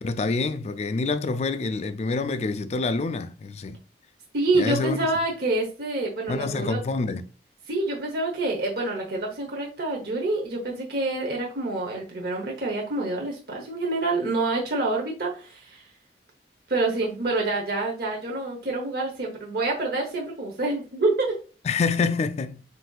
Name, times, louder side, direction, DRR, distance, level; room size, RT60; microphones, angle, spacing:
voice 1, 0.0-3.8 4.5-5.1 6.3-7.3 21.6-22.6, left 4 dB, 35° left, 0.3 m, -27 dB
voice 2, 4.3-6.8 7.7-15.8 16.7-21.3, right 2 dB, 60° right, 0.9 m, -27 dB
7.6 x 2.7 x 2.4 m
head